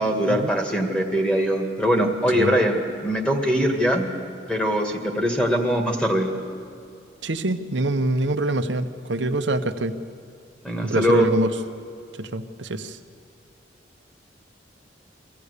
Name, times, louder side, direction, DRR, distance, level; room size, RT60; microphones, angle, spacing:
voice 1, 0.0-4.1 4.5-6.3 10.6-11.3, equal, 5° left, 3 dB, 1.9 m, -22 dB
voice 2, 7.2-9.9 10.8-11.5 12.2-13.0, right 1 dB, 75° right, 8 dB, 1.0 m, -25 dB
24.0 x 15.0 x 8.3 m, 2.4 s
head